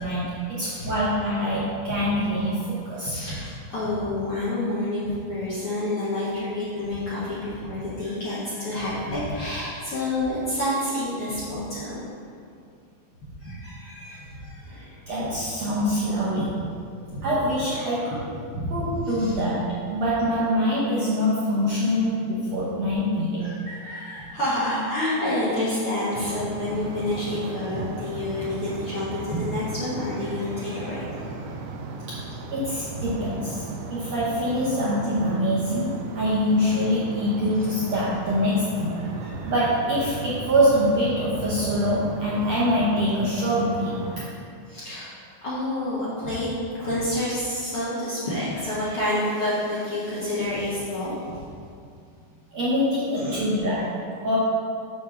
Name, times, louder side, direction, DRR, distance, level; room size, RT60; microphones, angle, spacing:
voice 1, 0.0-3.2 15.1-16.6 17.2-18.1 18.7-23.4 32.1-32.2 32.5-39.0 39.5-44.3 52.5-54.4, equal, 65° right, -8 dB, 1.7 m, -24 dB
voice 2, 0.6-0.9 1.4-2.0 3.0-11.9 13.4-15.0 15.6-15.7 16.9-17.3 17.7-17.9 18.5-19.4 23.4-31.5 32.9-33.0 39.0-39.5 44.7-45.1 45.4-46.5 46.8-51.4 53.2-53.4 53.8-53.9, left 1 dB, 50° left, -10 dB, 1.8 m, -29 dB
sound 1, 26.1-44.3, right 4 dB, 90° right, 2.5 m, -36 dB
8.7 x 3.5 x 6.4 m, 2.3 s
omnidirectional pair, 4.3 m